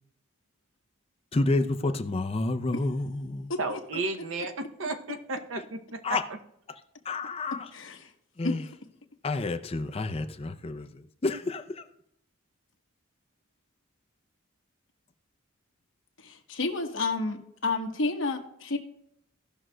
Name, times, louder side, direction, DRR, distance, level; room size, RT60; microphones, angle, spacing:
voice 1, 1.3-3.5 6.0-6.2 7.1-7.7 8.4-8.6 9.2-11.8, left 2 dB, 30° left, 0.5 m, -29 dB
voice 2, 3.6-4.5 4.8-6.0 6.3-6.4, right 3 dB, 65° right, 0.7 m, -33 dB
voice 3, 7.7-8.1 8.4-8.5 16.2-18.8, left 3 dB, 65° left, 1.1 m, -30 dB
18.0 x 6.1 x 2.2 m
head